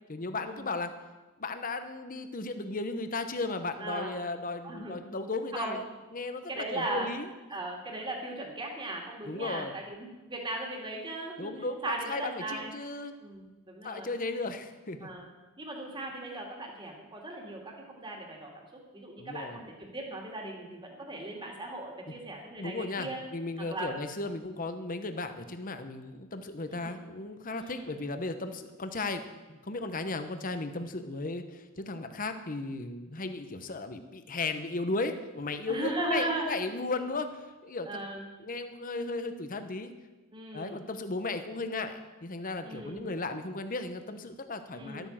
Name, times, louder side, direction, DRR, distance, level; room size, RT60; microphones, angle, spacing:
voice 1, 0.1-0.9 1.4-5.8 6.1-7.3 9.3-9.7 11.4-13.1 13.8-15.1 19.2-19.6 22.6-37.9 38.4-39.9 40.5-45.1, left 3 dB, 40° left, 9 dB, 0.9 m, -35 dB
voice 2, 3.8-4.2 4.6-5.0 5.5-5.8 6.5-7.1 7.5-11.5 11.8-12.7 13.2-14.1 15.0-15.3 15.6-18.5 18.9-23.2 23.6-24.0 24.4-24.5 26.7-27.0 27.5-27.8 35.7-36.5 37.9-38.3 40.3-40.8 42.6-43.1 44.7-45.1, right 2 dB, 20° right, -1 dB, 2.5 m, -37 dB
12.5 x 9.1 x 7.4 m, 1.2 s
head